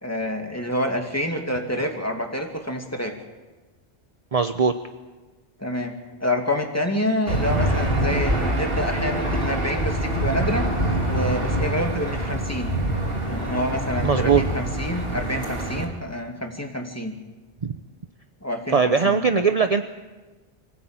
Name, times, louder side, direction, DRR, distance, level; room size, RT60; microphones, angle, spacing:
voice 1, 0.0-3.1 5.6-6.0 6.2-10.7 11.1-12.7 13.3-17.1 18.4-19.2, left 1 dB, 15° left, 3 dB, 2.5 m, -27 dB
voice 2, 4.3-4.7 14.0-14.4 17.6-17.7 18.7-19.8, right 5 dB, 40° right, 8 dB, 0.8 m, -20 dB
Aircraft / Engine, 7.3-15.8, right 1 dB, 65° right, 3.2 m, -25 dB
24.0 x 16.0 x 8.9 m, 1.2 s
omnidirectional pair, 1.1 m